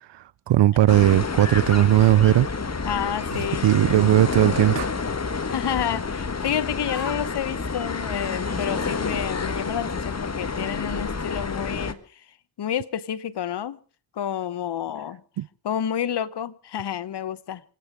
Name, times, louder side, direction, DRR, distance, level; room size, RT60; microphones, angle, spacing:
voice 1, 0.5-2.5 3.3-4.9 15.4-15.5, right 13 dB, 70° right, 0.7 m, -18 dB
sound 1, 0.9-11.9, left 4 dB, 35° left, 1.7 m, -29 dB
voice 2, 2.9-3.7 5.5-12.0 12.6-13.8 14.2-15.2 15.6-17.6, left 9 dB, 65° left, 1.0 m, -29 dB
27.5 x 9.4 x 5.0 m
supercardioid pair, 45°, 43 cm